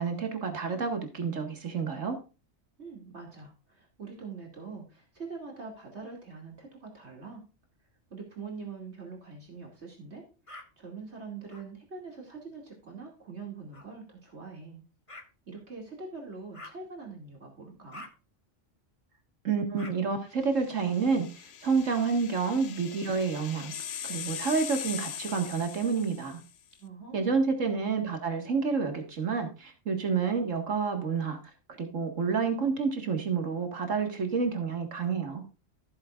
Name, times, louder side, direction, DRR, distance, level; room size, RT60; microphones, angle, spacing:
voice 1, 0.0-2.2 19.4-23.7 24.0-26.4 27.1-31.4 31.8-35.4, right 5 dB, 80° right, 5 dB, 2.1 m, -29 dB
voice 2, 2.8-7.4 8.1-10.2 10.8-14.8 15.5-18.0 26.8-27.3, right 4 dB, 60° right, 0 dB, 2.8 m, -43 dB
sound 1, 10.5-10.7 11.5-11.7 13.7-13.9 15.1-15.3 16.5-16.8 17.9-18.1 19.8-19.9 21.5-22.3 23.2-24.1 25.0-25.9, left 1 dB, 25° left, 1.7 m, -49 dB
sound 2, 20.6-26.5, left 9 dB, 70° left, 1.1 m, -41 dB
15.5 x 7.7 x 2.4 m, 0.31 s
omnidirectional pair, 1.3 m